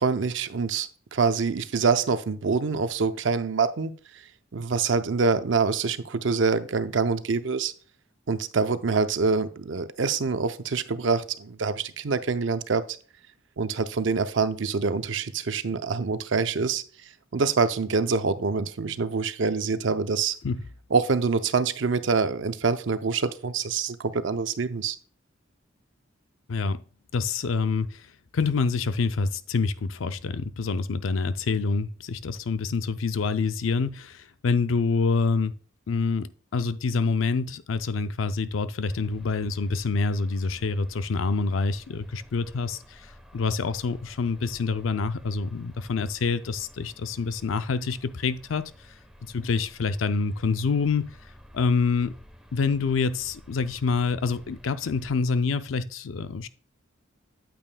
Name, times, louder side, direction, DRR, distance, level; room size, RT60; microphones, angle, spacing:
voice 1, 0.0-7.7 8.3-12.8 13.6-20.3 20.9-25.0, right 4 dB, 70° right, 0.6 m, -26 dB
voice 2, 26.5-26.8 27.1-28.1 28.3-35.5 35.9-48.7 49.2-51.1 51.5-52.1 52.5-56.5, left 4 dB, 90° left, 0.5 m, -26 dB
sound 1, 38.9-55.1, equal, 5° right, 1.0 m, -51 dB
8.8 x 8.6 x 2.2 m
head